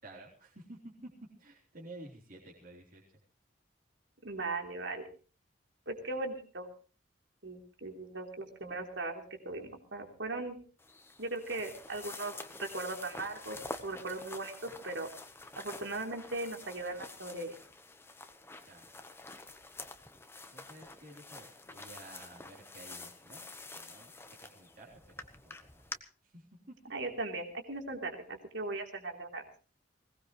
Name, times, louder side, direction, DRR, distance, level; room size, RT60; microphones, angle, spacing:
voice 1, 0.0-1.1 1.4-3.0 18.7-19.0 20.5-23.4 23.7-24.1 24.4-25.9 26.2-26.8, right 1 dB, 50° right, -4 dB, 3.6 m, -52 dB
voice 2, 4.2-5.1 5.9-6.7 7.4-10.6 11.2-12.3 12.6-13.6 13.8-15.1 15.6-17.5 26.9-29.4, right 2 dB, 80° right, 3 dB, 3.4 m, -38 dB
sound 1, 10.8-26.0, left 3 dB, 15° left, 1.1 m, -48 dB
21.0 x 18.5 x 3.2 m, 0.37 s
head